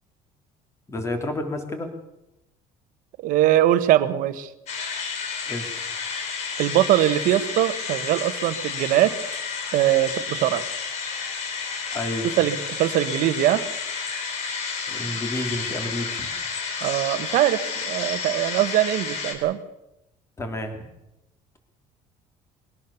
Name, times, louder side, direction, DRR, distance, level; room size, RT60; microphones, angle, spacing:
voice 1, 0.9-1.9 5.5-5.9 11.9-12.3 14.9-16.3 20.4-20.9, left 1 dB, 20° left, 5 dB, 3.3 m, -30 dB
voice 2, 3.2-4.5 6.6-9.1 9.7-10.6 12.4-13.6 16.8-19.6, right 13 dB, 65° right, 12 dB, 1.4 m, -21 dB
sound 1, 4.7-19.4, left 5 dB, 50° left, 4.2 m, -31 dB
22.0 x 18.0 x 7.1 m, 0.90 s
cardioid pair, 170°, 15 cm